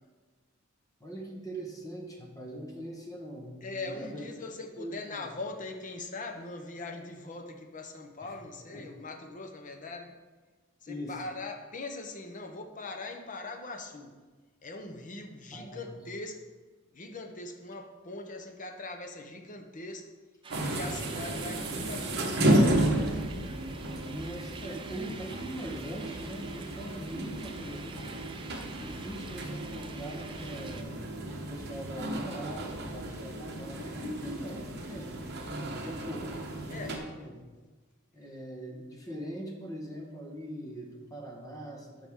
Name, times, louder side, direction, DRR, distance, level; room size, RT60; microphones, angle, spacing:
voice 1, 1.0-4.3 4.8-5.3 8.2-8.3 8.6-8.9 10.9-11.2 15.5-16.0 24.0-28.1 28.7-31.0 31.5-35.2 35.6-37.3 38.1-42.1, equal, 15° left, 0 dB, 1.3 m, -42 dB
voice 2, 3.6-10.1 10.8-14.1 14.6-16.4 16.9-20.0 20.6-22.6 36.7-37.0, left 2 dB, 40° left, 4 dB, 0.9 m, -41 dB
sound 1, 20.4-30.8, right 4 dB, 25° right, 0.6 m, -47 dB
sound 2, 20.5-37.0, right 1 dB, 55° right, 1.2 m, -32 dB
11.5 x 5.8 x 3.7 m, 1.3 s
head